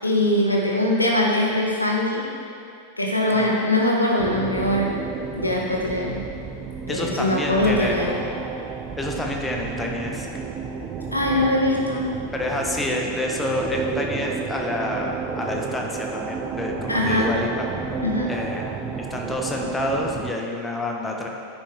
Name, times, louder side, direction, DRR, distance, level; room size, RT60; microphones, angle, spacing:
voice 1, 0.0-2.3 3.0-4.9 5.3-6.2 6.9-8.1 11.1-12.1 16.9-17.3 18.0-18.3, left 1 dB, 85° left, -2 dB, 1.1 m, -22 dB
sound 1, 4.2-20.3, right 5 dB, 25° right, 0.5 m, -32 dB
voice 2, 6.9-8.4 9.0-10.3 12.3-17.7 18.3-21.3, left 1 dB, 10° left, 0 dB, 1.0 m, -28 dB
9.7 x 5.5 x 3.6 m, 2.5 s
figure-of-eight pair, 90°, 0 cm